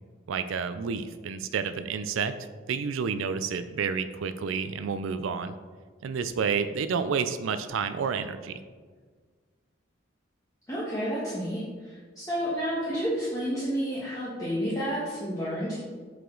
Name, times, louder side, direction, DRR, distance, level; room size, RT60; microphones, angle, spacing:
voice 1, 0.3-2.3 2.7-5.5 6.0-8.6, right 6 dB, 85° right, 11 dB, 0.4 m, -30 dB
voice 2, 10.7-15.8, equal, 15° left, -8 dB, 1.2 m, -30 dB
7.9 x 4.9 x 3.8 m, 1.5 s
head